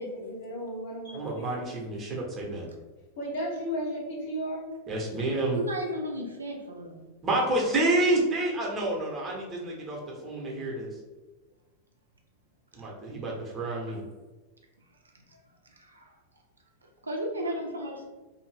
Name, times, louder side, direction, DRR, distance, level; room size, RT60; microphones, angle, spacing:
voice 1, 0.0-1.6 3.2-4.7, equal, 50° left, -3 dB, 1.0 m, -34 dB
voice 2, 1.1-2.7 4.9-5.6 7.2-10.9 12.7-14.0, right 2 dB, 25° right, -2 dB, 0.9 m, -29 dB
voice 3, 5.5-7.1 15.3-15.4 15.7-16.2 17.0-18.0, equal, 75° right, 1 dB, 0.5 m, -35 dB
2.7 x 2.5 x 3.4 m, 1.2 s
figure-of-eight pair, 90°, 0 cm